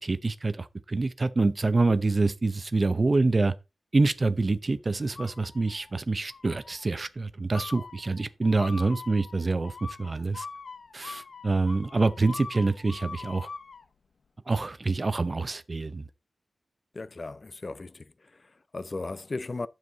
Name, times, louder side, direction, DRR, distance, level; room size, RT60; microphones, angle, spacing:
voice 1, 0.0-3.5 3.9-10.5 10.9-13.5 14.5-16.1, right 3 dB, 40° right, 0.7 m, -26 dB
sound 1, 5.2-5.9 6.3-6.8 7.5-13.8, left 4 dB, 70° left, 0.9 m, -43 dB
voice 2, 16.9-19.7, left 3 dB, 45° left, 0.5 m, -37 dB
9.6 x 7.3 x 3.9 m
wide cardioid pair, 100°, 0 cm